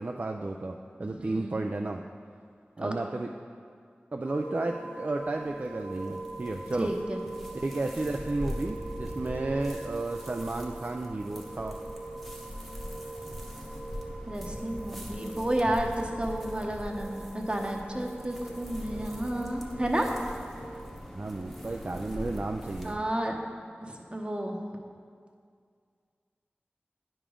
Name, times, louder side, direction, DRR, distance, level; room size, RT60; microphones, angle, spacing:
voice 1, 0.0-2.0 2.8-3.3 4.1-6.9 7.5-11.8 21.1-23.0, right 2 dB, 45° right, 3 dB, 0.3 m, -33 dB
voice 2, 1.0-1.6 2.8-2.9 6.7-7.2 14.3-20.1 22.8-23.4 23.8-24.6, right 1 dB, 25° right, 2 dB, 0.8 m, -31 dB
sound 1, 4.2-20.8, right 2 dB, 70° left, 1.3 m, -43 dB
sound 2, 5.2-22.9, equal, 5° left, 1.0 m, -42 dB
9.7 x 5.1 x 3.7 m, 2.1 s
wide cardioid pair, 45°, 4 cm